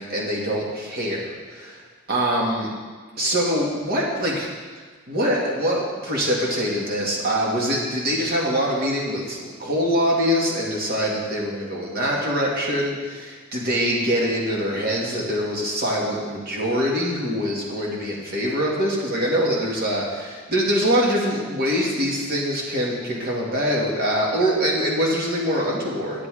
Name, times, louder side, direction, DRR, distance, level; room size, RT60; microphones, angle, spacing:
voice 1, 0.0-1.8 2.1-2.7 3.2-4.5 5.1-26.3, equal, 45° right, -4 dB, 2.2 m, -24 dB
10.5 x 8.5 x 5.0 m, 1.5 s
head